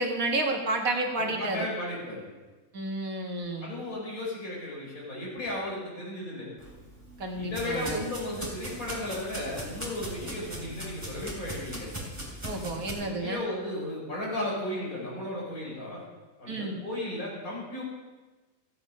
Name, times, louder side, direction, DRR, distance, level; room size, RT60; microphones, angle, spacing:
voice 1, 0.0-1.7 2.7-3.7 7.2-8.0 12.4-13.4 16.5-16.8, right 2 dB, 70° right, 2 dB, 2.0 m, -30 dB
voice 2, 1.1-2.2 3.6-6.5 7.3-11.9 12.9-16.0 16.4-17.8, left 1 dB, 70° left, -5 dB, 5.0 m, -35 dB
sound 1, 6.6-12.9, equal, 10° right, 3.0 m, -39 dB
15.5 x 8.1 x 5.4 m, 1.2 s
omnidirectional pair, 1.5 m